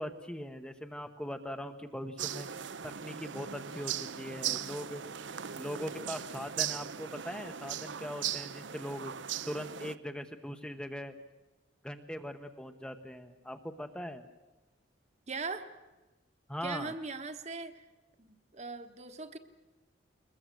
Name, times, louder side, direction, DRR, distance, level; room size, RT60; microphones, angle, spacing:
voice 1, 0.0-2.5 2.8-5.0 5.6-9.1 9.5-11.1 11.8-14.3 16.5-16.9, equal, 5° left, 7 dB, 0.9 m, -40 dB
sound 1, 2.2-10.0, right 9 dB, 75° right, 0.7 m, -38 dB
voice 2, 15.3-15.7 16.6-17.8 18.2-18.3 18.5-19.4, right 4 dB, 35° right, 8 dB, 1.3 m, -39 dB
22.5 x 21.0 x 7.8 m, 1.1 s
head